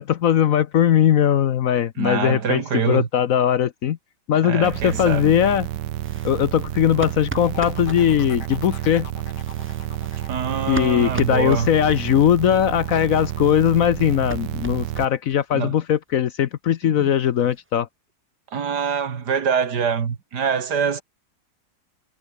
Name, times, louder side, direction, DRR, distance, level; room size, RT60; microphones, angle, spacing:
voice 1, 0.0-4.0 4.3-5.7 6.2-9.1 10.7-17.9, left 10 dB, 60° left, 1.0 m, -19 dB
voice 2, 2.0-3.1 4.4-5.3 7.8-7.9 10.3-11.7 15.5-15.8 16.8-16.9 18.5-21.0, right 6 dB, 70° right, 2.3 m, -24 dB
sound 1, 4.6-15.1, right 14 dB, 90° right, 1.4 m, -30 dB
sound 2, 6.0-8.0 9.2-12.3 12.6-12.7 13.0-13.1 13.3-15.4 15.7-15.8 16.1-16.2 16.5-16.6 16.9-17.7, right 2 dB, 10° right, 0.6 m, -38 dB
sound 3, 7.4-13.1 13.4-13.9, left 7 dB, 80° left, 2.2 m, -44 dB
omnidirectional pair, 1.8 m